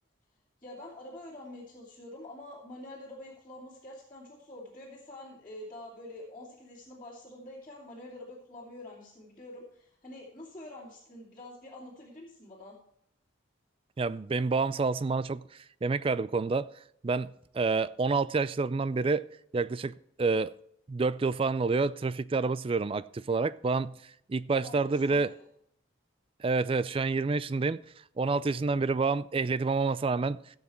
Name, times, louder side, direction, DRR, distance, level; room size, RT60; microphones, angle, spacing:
voice 1, 0.6-12.8 24.5-25.5, left 1 dB, 20° left, 2.7 m, -46 dB
voice 2, 14.0-15.4 15.8-16.7 17.0-19.3 19.5-20.5 20.9-24.0 24.3-25.3 26.4-27.8 28.2-30.4, right 4 dB, 30° right, 0.4 m, -28 dB
16.0 x 7.3 x 4.3 m
head